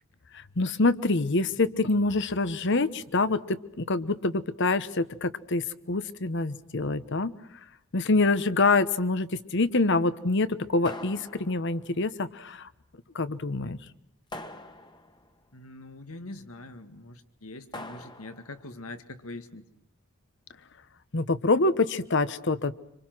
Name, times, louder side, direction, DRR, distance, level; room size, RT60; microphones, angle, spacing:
voice 1, 0.3-7.3 7.9-12.7 13.1-13.8 21.1-22.7, left 3 dB, 55° left, 14 dB, 1.1 m, -26 dB
sound 1, 10.8-11.9 14.3-15.3 17.7-18.6, left 1 dB, 20° left, 1.5 m, -43 dB
voice 2, 15.5-19.6, left 2 dB, 85° left, 9 dB, 1.9 m, -43 dB
26.5 x 26.5 x 6.1 m, 0.82 s
head